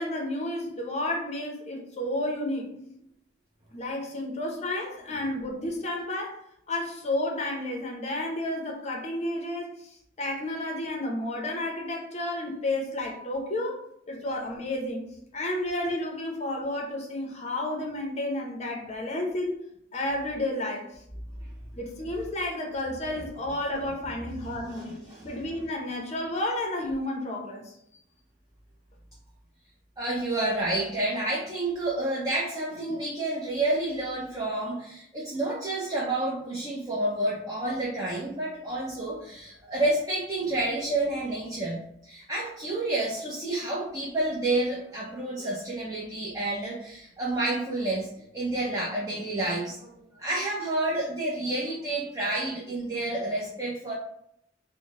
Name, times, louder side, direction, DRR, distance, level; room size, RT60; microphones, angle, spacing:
voice 1, 0.0-2.7 3.7-6.4 6.7-13.8 14.1-15.1 15.3-19.6 19.9-21.0 21.7-27.7, left 1 dB, 35° left, 1 dB, 0.6 m, -31 dB
voice 2, 24.4-25.2 30.0-53.9, right 2 dB, 20° right, -5 dB, 0.6 m, -29 dB
3.6 x 2.1 x 3.6 m, 0.73 s
head